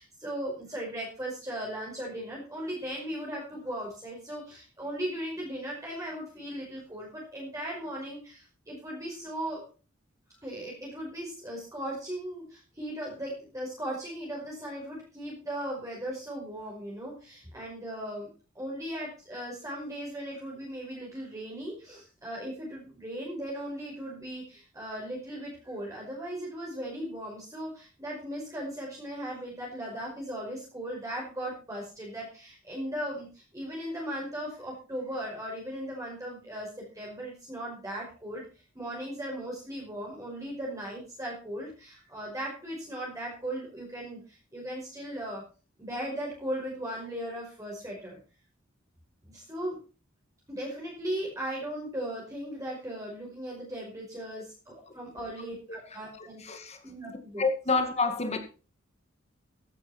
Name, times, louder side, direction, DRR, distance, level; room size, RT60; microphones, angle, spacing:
voice 1, 0.0-9.6 10.4-18.3 18.5-38.4 38.7-45.4 45.8-48.2 49.3-49.8 50.5-56.4 56.8-57.4, right 1 dB, 15° right, 5.5 m, -37 dB
voice 2, 55.9-56.8 57.4-58.4, left 3 dB, 30° left, 2.2 m, -29 dB
14.5 x 11.5 x 4.4 m
head